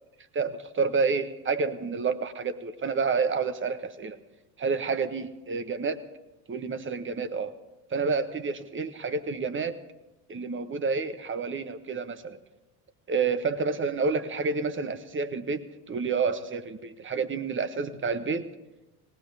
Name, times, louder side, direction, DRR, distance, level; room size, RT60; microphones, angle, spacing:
voice 1, 0.3-4.2 4.6-6.0 6.5-7.5 7.9-9.8 10.3-12.4 13.1-18.4, right 4 dB, 25° right, 10 dB, 1.3 m, -29 dB
19.5 x 19.0 x 3.5 m, 1.0 s
hypercardioid pair, 75°, 46 cm